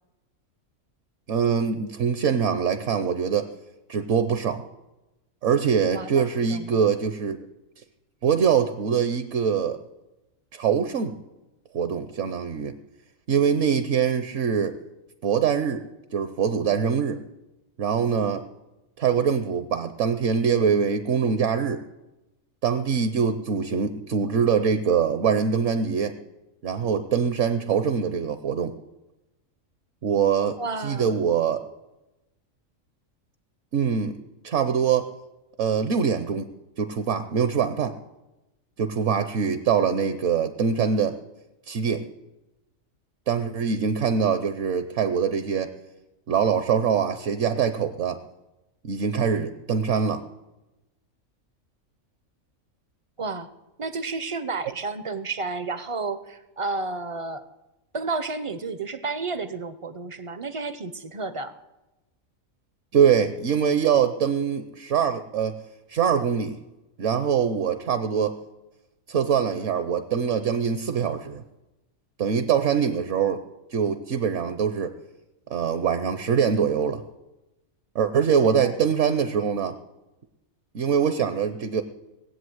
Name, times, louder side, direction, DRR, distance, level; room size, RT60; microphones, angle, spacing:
voice 1, 1.3-3.5 3.9-4.6 5.4-7.4 8.2-9.8 10.5-11.2 11.7-12.7 13.3-14.8 15.2-15.8 16.1-17.2 17.8-18.4 19.0-21.8 22.6-26.2 26.6-28.7 30.0-31.6 33.7-34.2 34.4-35.1 35.6-36.5 36.8-38.0 38.8-41.2 41.7-42.1 43.3-45.7 46.3-48.2 48.8-50.2 62.9-65.6 65.9-66.6 67.0-68.4 69.1-71.4 72.2-73.4 73.7-74.9 75.5-77.0 77.9-79.8 80.7-81.8, right 7 dB, 65° right, 9 dB, 1.0 m, -23 dB
voice 2, 6.5-6.8 30.6-31.2 53.2-53.5 53.8-57.4 57.9-61.5 78.4-78.9, right 3 dB, 40° right, 12 dB, 0.5 m, -31 dB
19.0 x 8.1 x 7.9 m, 1.0 s
omnidirectional pair, 1.4 m